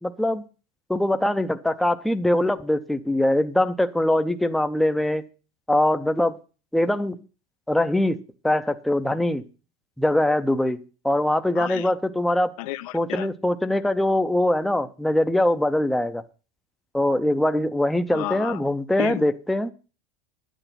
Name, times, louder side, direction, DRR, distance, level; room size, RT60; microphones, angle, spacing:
voice 1, 0.0-0.4 0.9-5.2 5.7-6.4 6.7-7.2 7.7-8.2 8.4-9.4 10.0-10.8 11.0-12.5 12.9-16.2 16.9-19.7, left 1 dB, ahead, 0.6 m, -22 dB
voice 2, 11.6-11.9 12.6-13.3 18.1-18.6 19.0-19.2, left 15 dB, 75° left, 0.9 m, -32 dB
10.5 x 9.1 x 5.8 m
supercardioid pair, 155°, 18 cm